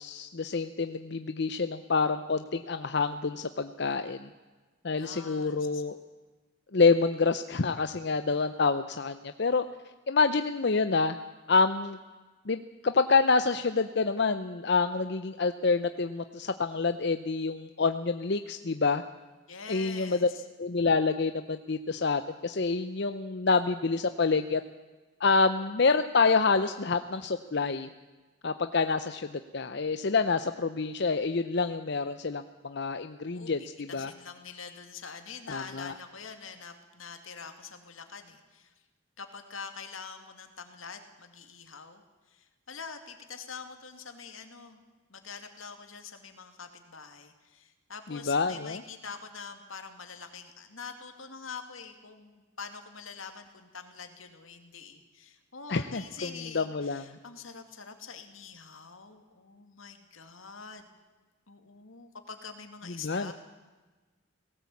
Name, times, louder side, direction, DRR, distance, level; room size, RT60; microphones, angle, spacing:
voice 1, 0.0-4.3 4.8-6.0 6.7-9.6 10.1-11.2 11.5-12.0 12.5-19.0 19.7-20.3 20.6-24.6 25.2-27.9 28.4-34.1 35.5-35.9 48.1-48.8 55.7-56.3 56.5-57.1 63.0-63.3, left 4 dB, 55° left, 9 dB, 0.7 m, -27 dB
voice 2, 5.0-5.8 19.5-20.4 33.3-33.5 33.9-38.7 39.2-42.0 42.3-44.8 45.1-60.9 61.5-63.3, left 5 dB, 85° left, 6 dB, 2.4 m, -45 dB
19.0 x 17.5 x 8.5 m, 1.3 s
head